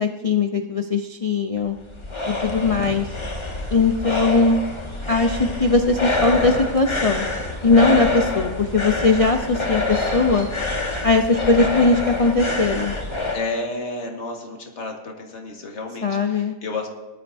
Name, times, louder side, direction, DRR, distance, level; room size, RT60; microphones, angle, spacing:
voice 1, 0.0-1.8 2.3-3.1 3.7-4.6 5.1-7.3 7.6-10.5 11.0-12.9 16.0-16.5, left 3 dB, 70° left, 5 dB, 0.3 m, -19 dB
sound 1, 1.6-13.4, left 2 dB, 20° left, 1.2 m, -26 dB
voice 2, 13.3-16.9, left 3 dB, 45° left, 1 dB, 2.0 m, -31 dB
18.5 x 11.5 x 2.7 m, 1.2 s
omnidirectional pair, 1.7 m